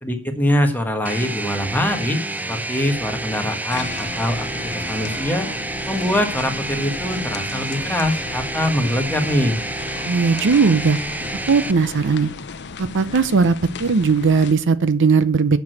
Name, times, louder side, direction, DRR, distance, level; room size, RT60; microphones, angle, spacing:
voice 1, 0.0-2.2 2.5-4.5 4.7-5.5 5.9-9.6, left 1 dB, 10° left, 4 dB, 1.5 m, -23 dB
sound 1, 1.1-11.7, right 2 dB, 10° right, 0.4 m, -29 dB
sound 2, 3.7-14.5, left 5 dB, 55° left, 0.7 m, -35 dB
voice 2, 10.1-11.0 11.5-12.3 12.8-15.6, right 4 dB, 60° right, 14 dB, 0.6 m, -18 dB
8.6 x 6.2 x 7.8 m, 0.42 s
head